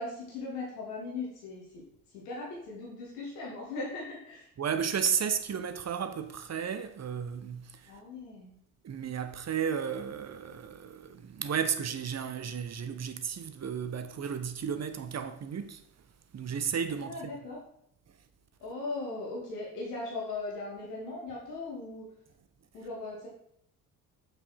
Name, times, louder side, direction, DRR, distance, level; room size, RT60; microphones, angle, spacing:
voice 1, 0.0-1.6 2.1-4.4 7.9-8.6 17.0-17.6 18.6-22.0 22.7-23.3, left 3 dB, 75° left, 2.5 m, -38 dB
voice 2, 4.6-7.9 8.8-15.8 16.3-17.4, right 7 dB, 35° right, 1.0 m, -33 dB
7.8 x 5.6 x 4.4 m
hypercardioid pair, 55°, 47 cm